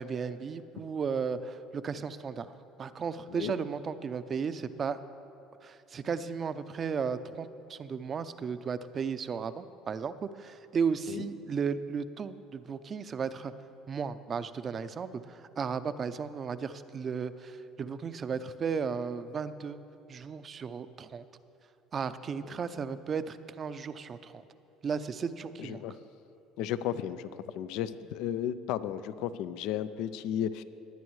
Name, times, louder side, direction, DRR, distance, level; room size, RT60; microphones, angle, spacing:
voice 1, 0.0-5.0 5.6-13.5 13.9-19.8 20.1-21.2 21.9-24.4 24.8-25.8, right 6 dB, 40° right, 13 dB, 0.5 m, -35 dB
voice 2, 25.6-25.9 26.6-27.3 27.5-30.6, left 10 dB, 70° left, 14 dB, 0.4 m, -34 dB
20.0 x 9.2 x 3.2 m, 2.8 s
supercardioid pair, 80°, 0 cm